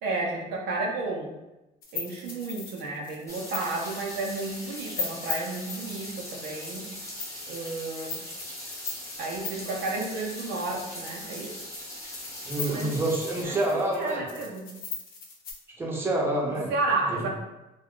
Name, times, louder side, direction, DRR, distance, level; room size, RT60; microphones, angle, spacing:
voice 1, 0.0-1.3 1.9-6.9 7.5-8.2 9.2-11.5 12.6-13.0 13.4-13.6 13.9-14.7 16.5-17.3, right 3 dB, 80° right, -1 dB, 0.6 m, -32 dB
sound 1, 1.8-15.5, left 5 dB, 60° left, 0.7 m, -39 dB
sound 2, 3.3-13.4, left 1 dB, 20° left, 0.8 m, -40 dB
voice 2, 12.5-14.2 15.8-16.7 17.1-17.3, right 1 dB, 15° right, -3 dB, 0.7 m, -27 dB
2.2 x 2.2 x 3.6 m, 1.0 s
cardioid pair, 110°, 17 cm